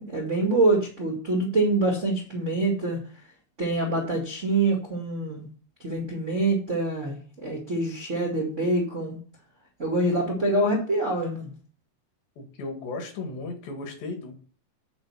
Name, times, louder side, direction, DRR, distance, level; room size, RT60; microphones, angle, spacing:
voice 1, 0.1-3.0 3.6-5.5 5.8-9.2 9.8-11.5, right 2 dB, 90° right, -1 dB, 0.6 m, -25 dB
voice 2, 12.4-14.4, left 3 dB, 75° left, 3 dB, 4.2 m, -35 dB
9.7 x 4.3 x 7.0 m, 0.41 s
omnidirectional pair, 5.0 m